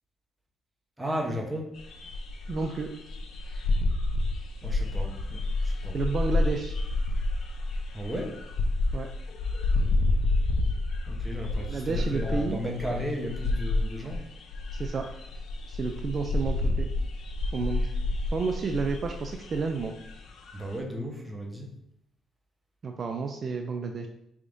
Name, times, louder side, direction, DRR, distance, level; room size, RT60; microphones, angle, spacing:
voice 1, 1.0-1.7 4.6-6.0 7.9-8.4 11.1-14.2 20.5-21.7, equal, 5° right, 0 dB, 0.9 m, -34 dB
sound 1, 1.8-20.7, left 2 dB, 70° left, 0.6 m, -29 dB
voice 2, 2.5-2.9 5.9-6.8 8.9-9.1 11.5-12.6 14.7-15.1 15.7-16.9 17.5-17.9 18.3-19.9 22.8-24.1, right 4 dB, 45° right, 4 dB, 0.3 m, -31 dB
4.4 x 3.5 x 2.6 m, 0.79 s
cardioid pair, 90°, 0 cm